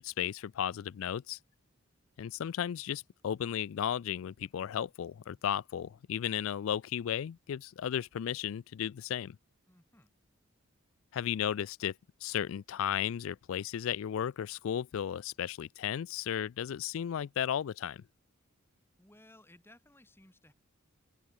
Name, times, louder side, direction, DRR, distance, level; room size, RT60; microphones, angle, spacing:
voice 1, 0.0-1.4 2.2-9.4 11.1-11.9 12.2-18.0, left 9 dB, 70° left, 0.3 m, -34 dB
voice 2, 9.7-10.1 19.0-20.5, left 1 dB, 10° left, 1.8 m, -59 dB
open air
head